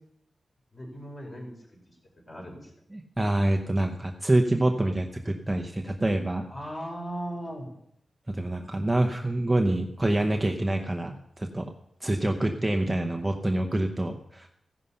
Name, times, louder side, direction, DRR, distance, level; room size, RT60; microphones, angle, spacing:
voice 1, 0.7-1.5 1.9-2.0 2.3-2.7 6.5-7.7, equal, 30° left, 0 dB, 4.4 m, -37 dB
voice 2, 2.9-6.5 8.3-11.7 12.0-14.5, right 1 dB, 10° right, 3 dB, 0.8 m, -26 dB
15.5 x 11.0 x 5.6 m, 0.75 s
wide cardioid pair, 170°, 0 cm